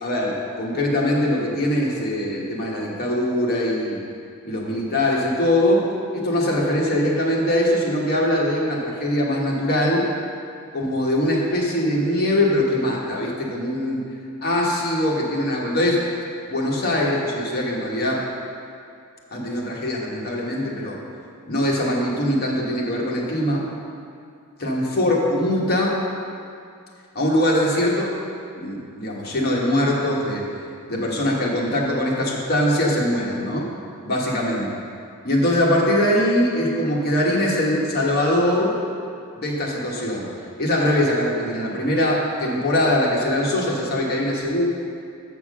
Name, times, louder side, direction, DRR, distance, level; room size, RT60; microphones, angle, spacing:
voice 1, 0.0-4.0 4.4-5.8 6.1-10.0 10.7-14.0 14.4-16.0 16.5-18.2 19.3-21.0 21.5-23.6 24.6-25.9 27.1-28.1 28.5-30.4 30.9-33.6 34.0-34.7 35.2-38.7 39.4-40.3 40.6-44.7, left 1 dB, 45° left, -3 dB, 1.3 m, -22 dB
7.4 x 6.0 x 6.2 m, 2.4 s
head